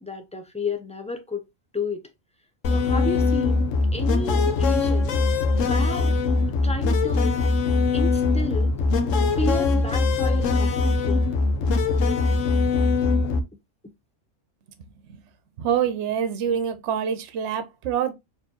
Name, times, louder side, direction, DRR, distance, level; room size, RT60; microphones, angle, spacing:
voice 1, 0.0-1.5 1.7-2.0 2.7-5.1 5.6-6.2 6.6-7.3 7.9-8.8 9.3-11.2, left 2 dB, 10° left, 0.3 m, -32 dB
sound 1, 2.6-13.4, left 3 dB, 75° left, 1.1 m, -21 dB
voice 2, 15.6-18.1, right 8 dB, 65° right, 1.0 m, -26 dB
4.3 x 3.1 x 2.8 m
omnidirectional pair, 1.3 m